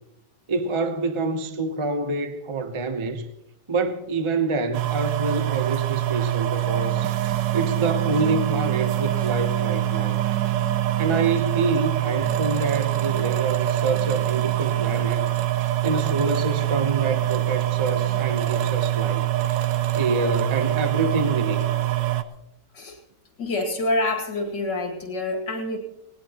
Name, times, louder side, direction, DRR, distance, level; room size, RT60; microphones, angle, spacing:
voice 1, 0.5-3.3 3.7-7.1 7.5-10.2 11.0-15.2 15.8-19.3 20.0-21.7, right 3 dB, 30° right, 0.6 m, -26 dB
sound 1, 4.7-22.2, right 14 dB, 85° right, 1.4 m, -24 dB
sound 2, 6.6-11.9 12.2-18.5, right 7 dB, 10° right, 1.0 m, -37 dB
voice 2, 23.4-25.8, left 2 dB, 80° left, 2.8 m, -27 dB
19.0 x 18.5 x 2.9 m
omnidirectional pair, 1.9 m